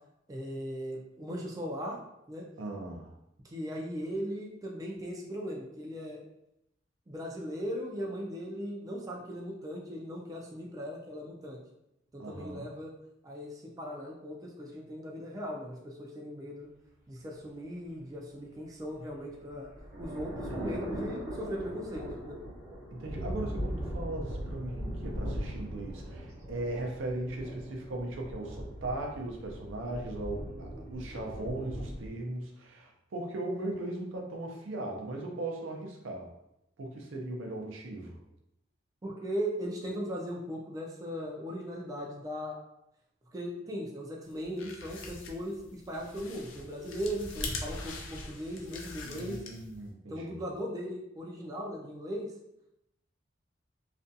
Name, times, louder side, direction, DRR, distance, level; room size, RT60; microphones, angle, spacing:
voice 1, 0.3-2.0 2.3-2.5 3.4-6.2 7.1-11.6 12.1-12.9 13.2-16.7 17.1-19.7 20.0-22.4 39.0-42.6 43.3-49.4 50.1-52.3, equal, 20° right, -2 dB, 0.3 m, -38 dB
voice 2, 2.6-3.2 12.2-12.7 20.3-20.9 22.9-36.3 36.8-38.2 49.0-50.4, right 2 dB, 75° right, 1 dB, 0.5 m, -38 dB
sound 1, 19.0-32.1, equal, 45° right, 0.9 m, -39 dB
sound 2, 44.3-49.8, left 3 dB, 75° left, 0.4 m, -42 dB
2.4 x 2.2 x 2.6 m, 0.82 s
head